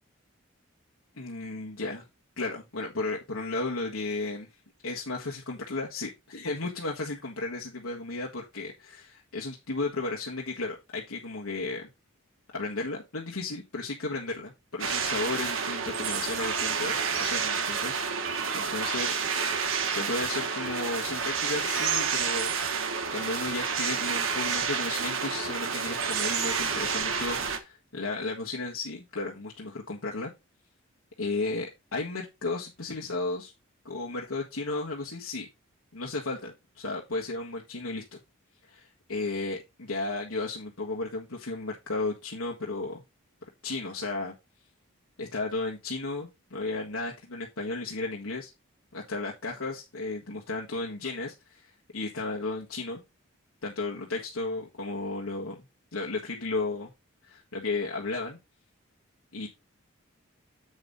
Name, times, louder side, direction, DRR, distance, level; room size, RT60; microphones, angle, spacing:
voice 1, 1.2-2.0 2.4-4.5 4.8-11.9 12.5-18.0 18.5-19.5 19.9-22.5 23.1-30.3 31.2-33.5 33.8-35.5 35.9-38.2 38.6-43.0 43.6-44.3 45.2-48.5 48.9-53.0 53.6-55.6 55.9-56.9 57.2-58.4 59.3-59.5, left 3 dB, 80° left, -2 dB, 1.5 m, -34 dB
sound 1, 14.8-27.6, right 6 dB, 65° right, 1.3 m, -29 dB
8.0 x 5.5 x 4.0 m, 0.23 s
head